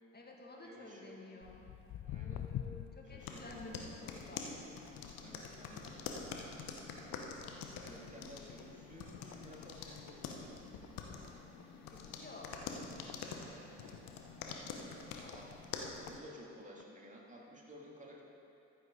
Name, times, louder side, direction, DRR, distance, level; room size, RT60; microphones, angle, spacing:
voice 1, 0.1-1.7 2.1-4.6 9.2-9.5 11.9-12.6 14.7-15.4, left 2 dB, 25° left, 0 dB, 1.9 m, -53 dB
voice 2, 0.6-1.2 2.0-2.5 3.1-3.6 5.1-5.9 7.8-10.6 13.4-14.1 15.3-15.5 16.1-18.2, equal, 20° right, -3 dB, 2.5 m, -54 dB
Walk footsteps, 1.4-8.1 8.4-8.8 9.3-9.4 10.1-10.2 10.6-10.7 10.8-10.9 11.5-11.7 12.3-13.9 14.5-14.6 15.3-15.4 15.9-16.1 16.8-16.9, left 10 dB, 50° left, 0.6 m, -47 dB
sound 1, 3.2-16.2, left 5 dB, 70° left, 1.0 m, -46 dB
14.0 x 7.7 x 3.8 m, 2.8 s
hypercardioid pair, 45°, 35 cm